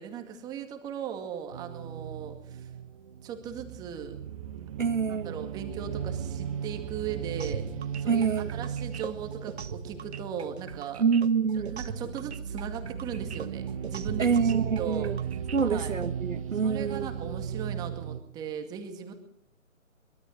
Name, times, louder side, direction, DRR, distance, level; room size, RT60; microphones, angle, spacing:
voice 1, 0.0-2.7 3.2-4.2 5.1-7.7 8.0-11.0 11.5-15.1 15.6-15.9 16.6-19.1, right 8 dB, 10° right, 5 dB, 2.1 m, -38 dB
sound 1, 1.5-18.2, right 7 dB, 25° right, 1.3 m, -36 dB
voice 2, 4.8-5.3 8.1-8.5 11.0-11.8 14.2-15.2 15.5-17.1, right 6 dB, 70° right, 7 dB, 1.5 m, -26 dB
sound 2, 7.4-16.1, right 6 dB, 50° right, 1.7 m, -41 dB
24.0 x 22.5 x 7.8 m, 0.67 s
figure-of-eight pair, 155°, 41 cm